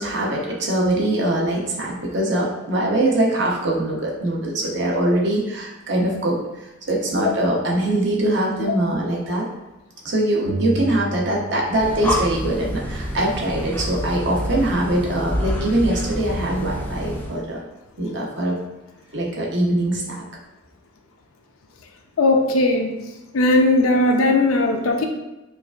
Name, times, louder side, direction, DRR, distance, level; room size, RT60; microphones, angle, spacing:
voice 1, 0.0-6.4 6.9-9.4 10.0-17.6 18.0-18.6 19.1-20.2, right 1 dB, 55° right, -2 dB, 0.7 m, -22 dB
voice 2, 7.1-7.5 8.7-8.8 22.2-22.9 23.3-25.1, left 2 dB, 85° left, 3 dB, 0.5 m, -18 dB
sound 1, 10.5-12.0 12.2-14.0, right 3 dB, 90° right, 0.4 m, -33 dB
Breathing, 11.6-17.4, equal, 10° left, 0.3 m, -28 dB
4.6 x 2.4 x 2.4 m, 1.0 s
head